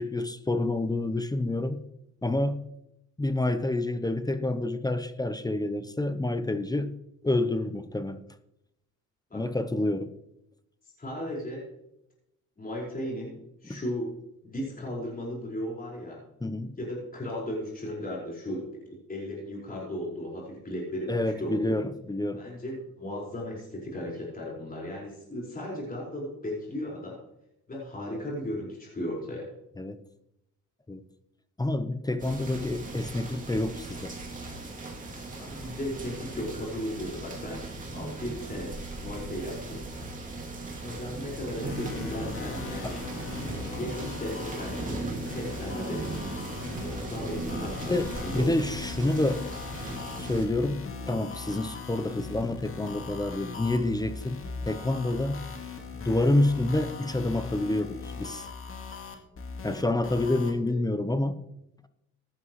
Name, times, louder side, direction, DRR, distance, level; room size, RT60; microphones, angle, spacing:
voice 1, 0.0-1.8 2.2-2.6 3.2-6.9 7.2-8.2 9.3-10.1 13.7-13.8 16.4-16.7 21.1-22.4 29.8-30.0 30.9-31.0 31.6-34.1 42.8-42.9 47.9-49.4 50.2-55.4 56.0-58.5 59.6-61.4, left 2 dB, 15° left, 11 dB, 0.8 m, -28 dB
voice 2, 11.0-11.6 12.6-14.1 14.4-16.2 16.8-21.8 22.4-27.2 27.7-29.5 35.4-39.8 40.8-43.0 43.7-45.0 45.3-46.0 46.8-47.9 48.2-48.5, left 1 dB, 30° left, -4 dB, 5.0 m, -36 dB
sound 1, 32.2-50.5, right 2 dB, 25° right, 3.0 m, -38 dB
sound 2, 41.6-60.5, left 5 dB, 45° left, 2.1 m, -40 dB
15.5 x 10.5 x 3.2 m, 0.84 s
cardioid pair, 90°, 30 cm